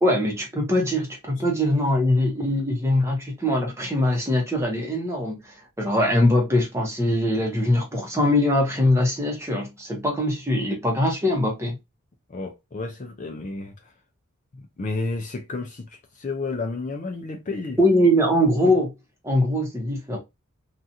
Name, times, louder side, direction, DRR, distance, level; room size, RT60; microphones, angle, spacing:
voice 1, 0.0-11.8 17.8-18.9 19.2-20.2, left 1 dB, 15° right, 0.9 m, -22 dB
voice 2, 12.3-13.7 14.5-17.8, left 3 dB, 35° left, 0.4 m, -31 dB
2.8 x 2.4 x 2.6 m
head